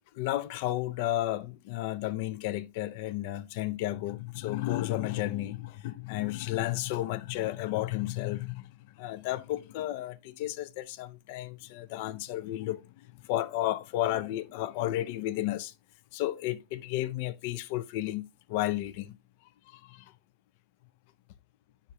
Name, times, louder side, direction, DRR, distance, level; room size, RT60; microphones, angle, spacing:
voice 1, 0.1-12.8 13.3-15.7 16.1-19.1 19.7-20.0, left 15 dB, 45° left, 0.4 m, -32 dB
9.7 x 3.5 x 2.9 m
figure-of-eight pair, 90°, 0 cm